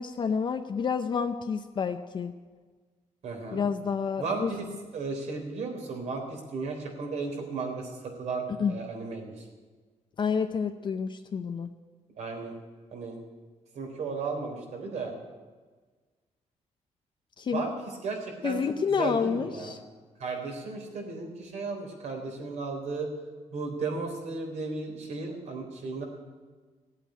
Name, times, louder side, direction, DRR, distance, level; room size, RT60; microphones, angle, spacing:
voice 1, 0.0-2.3 3.5-4.5 8.6-8.8 10.2-11.7 17.4-17.6 18.4-19.8, left 6 dB, 40° left, 8 dB, 0.6 m, -29 dB
voice 2, 3.2-3.6 4.2-4.6 4.9-9.5 12.2-12.5 12.9-13.2 13.8-15.1 17.5-17.7 18.0-18.6 19.0-19.7 20.2-23.1 23.5-26.0, right 4 dB, 70° right, 2 dB, 3.7 m, -34 dB
16.5 x 8.4 x 10.0 m, 1.4 s
cardioid pair, 150°, 12 cm